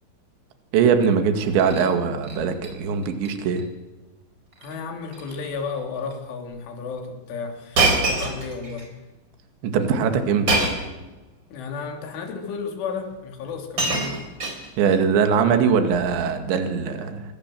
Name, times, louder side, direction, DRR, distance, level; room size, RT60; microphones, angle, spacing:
voice 1, 0.7-3.6 9.6-10.6 14.8-17.2, right 6 dB, 70° right, 6 dB, 4.2 m, -21 dB
Shatter, 1.4-1.9 2.2-2.7 3.0-3.3 3.6-3.7 4.5-4.8 5.1-5.4 6.1-6.2 7.7-8.9 10.5-11.0 12.0-12.1 13.1-13.2 13.5-15.0 15.9-16.2, right 3 dB, 25° right, 4.4 m, -25 dB
voice 2, 4.6-8.9 11.5-14.2, left 5 dB, 80° left, 4 dB, 5.5 m, -33 dB
27.5 x 23.0 x 7.7 m, 1.1 s
omnidirectional pair, 5.5 m